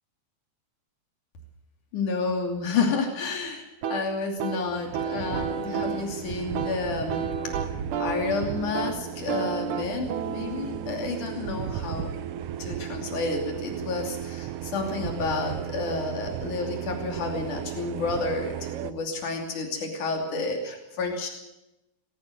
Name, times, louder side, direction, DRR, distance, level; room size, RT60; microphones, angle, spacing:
voice 1, 1.9-3.6 3.9-7.5 8.0-12.1 12.6-21.3, left 4 dB, 85° left, 3 dB, 4.3 m, -30 dB
sound 1, 3.8-12.4, right 6 dB, 85° right, 2.9 m, -33 dB
sound 2, 4.6-18.9, right 10 dB, 65° right, 1.7 m, -35 dB
19.5 x 17.0 x 8.0 m, 0.95 s
omnidirectional pair, 3.4 m